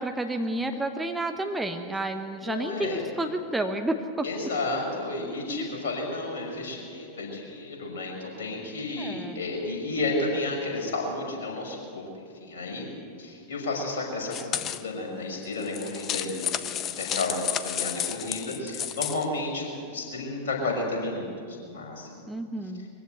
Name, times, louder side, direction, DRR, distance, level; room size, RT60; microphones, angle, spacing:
voice 1, 0.0-4.3 5.5-5.7 9.0-9.4 22.3-22.9, right 1 dB, 5° right, 6 dB, 1.1 m, -30 dB
voice 2, 2.4-3.0 4.2-12.9 13.2-22.2, left 2 dB, 60° left, 0 dB, 5.9 m, -32 dB
sound 1, 14.3-14.8 15.5-19.2, left 10 dB, 30° left, 0.9 m, -32 dB
22.5 x 15.5 x 8.0 m, 2.4 s
figure-of-eight pair, 90°, 0 cm